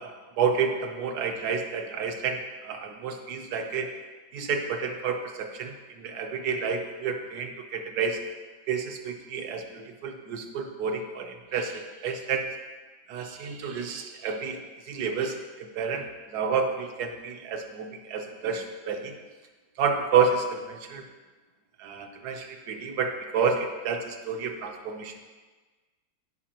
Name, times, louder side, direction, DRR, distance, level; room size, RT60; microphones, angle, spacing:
voice 1, 0.0-3.9 4.3-8.2 8.7-12.5 13.1-14.6 14.9-16.1 16.3-19.2 19.8-21.0 21.8-25.2, right 5 dB, 65° right, 4 dB, 1.3 m, -30 dB
14.0 x 5.4 x 2.9 m, 1.3 s
omnidirectional pair, 2.0 m